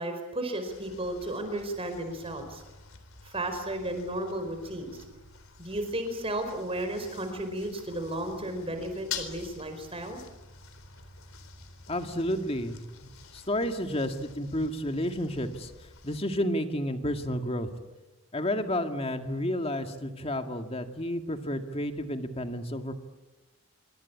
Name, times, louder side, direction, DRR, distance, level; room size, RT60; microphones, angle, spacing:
voice 1, 0.0-2.6 3.2-5.0 5.6-10.2, right 1 dB, 25° right, 7 dB, 5.0 m, -34 dB
sound 1, 0.7-16.2, left 6 dB, 70° left, 3.9 m, -47 dB
voice 2, 11.9-15.7 16.0-17.7 18.3-22.9, left 1 dB, 25° left, 6 dB, 2.1 m, -31 dB
25.5 x 24.0 x 8.7 m, 1.1 s
head